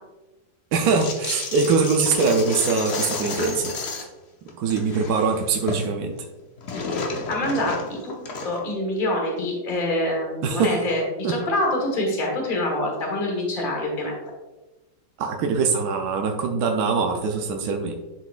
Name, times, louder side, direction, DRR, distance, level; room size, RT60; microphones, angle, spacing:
voice 1, 0.7-3.7 4.6-6.1 10.4-10.8 11.2-11.4 15.2-17.9, right 4 dB, 65° right, 3 dB, 1.0 m, -22 dB
sound 1, 1.0-4.2 4.5-5.9 6.2-8.7, left 3 dB, 80° left, 0.5 m, -31 dB
voice 2, 7.3-8.1 8.4-14.1, left 1 dB, 30° left, -1 dB, 1.4 m, -25 dB
10.5 x 3.9 x 2.4 m, 1.1 s
omnidirectional pair, 2.1 m